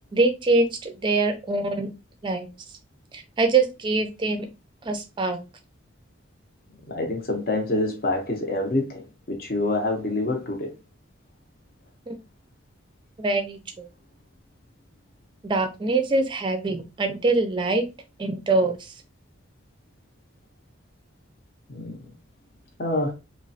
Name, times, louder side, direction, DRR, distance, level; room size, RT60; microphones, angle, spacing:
voice 1, 0.1-1.9 2.2-2.5 3.1-4.5 4.9-5.4 12.1-12.2 13.2-13.9 15.4-17.8 18.2-18.8, right 3 dB, 25° right, 0.4 m, -24 dB
voice 2, 6.9-10.7 15.9-16.0 21.7-22.1 22.8-23.1, left 2 dB, 45° left, 0.6 m, -26 dB
3.0 x 2.1 x 2.6 m
head